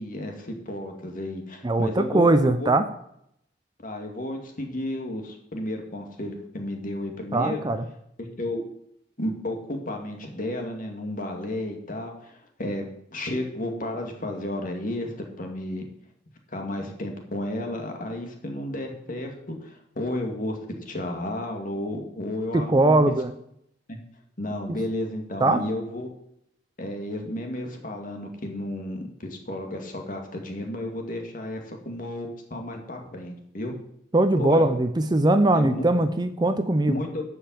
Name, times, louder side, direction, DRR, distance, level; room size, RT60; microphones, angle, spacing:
voice 1, 0.0-2.7 3.8-7.6 8.2-8.6 9.2-15.1 15.4-15.9 16.5-20.6 20.9-23.0 23.9-24.0 24.4-26.1 26.8-33.7 34.4-34.7 35.5-35.8 36.9-37.2, left 1 dB, 45° left, 3 dB, 2.0 m, -32 dB
voice 2, 1.6-2.8 7.3-7.8 22.5-23.3 25.4-25.6 34.1-36.9, right 2 dB, 25° right, 10 dB, 0.6 m, -21 dB
11.5 x 5.5 x 7.5 m, 0.74 s
head